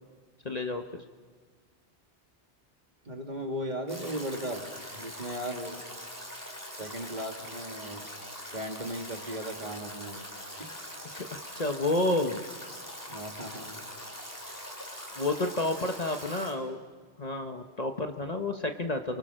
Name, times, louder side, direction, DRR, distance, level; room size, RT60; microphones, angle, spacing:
voice 1, 0.4-0.8 11.1-12.4 15.2-16.8 17.2-19.2, left 2 dB, 40° left, 5 dB, 1.1 m, -30 dB
voice 2, 3.0-4.6 4.9-5.8 6.7-8.0 8.5-10.2 10.6-10.7 13.1-13.8, equal, 40° right, 3 dB, 2.3 m, -37 dB
Stream / Drip / Trickle dribble, 3.9-16.5, equal, 15° left, 3.4 m, -43 dB
29.0 x 24.5 x 6.3 m, 1.5 s
omnidirectional pair, 1.1 m